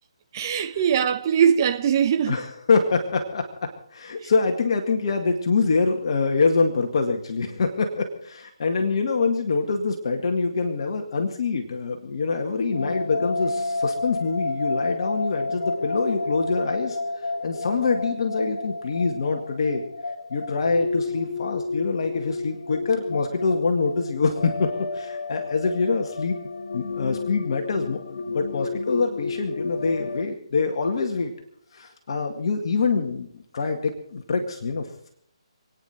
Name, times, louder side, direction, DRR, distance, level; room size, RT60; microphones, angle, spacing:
voice 1, 0.3-2.4, right 8 dB, 35° right, 1.3 m, -21 dB
voice 2, 2.3-17.0 17.4-19.8 20.3-24.7 24.9-26.4 26.7-31.3 31.7-35.1, left 4 dB, 55° left, 2.0 m, -25 dB
sound 1, 12.7-30.2, left 3 dB, 80° left, 0.8 m, -31 dB
27.5 x 9.8 x 4.5 m
hypercardioid pair, 150°, 3 cm